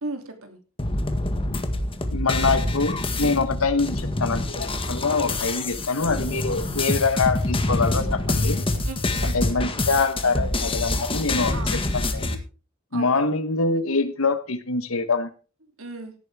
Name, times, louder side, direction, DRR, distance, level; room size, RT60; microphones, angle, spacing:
voice 1, 0.0-0.6 8.8-9.6 11.5-11.8 12.9-13.1 15.8-16.1, right 2 dB, 90° right, 5 dB, 3.0 m, -36 dB
sound 1, 0.8-12.3, left 2 dB, 25° left, 1.7 m, -26 dB
voice 2, 2.1-8.6 9.2-12.4 12.9-15.3, left 4 dB, 90° left, 11 dB, 1.2 m, -25 dB
16.5 x 9.3 x 3.6 m, 0.35 s
head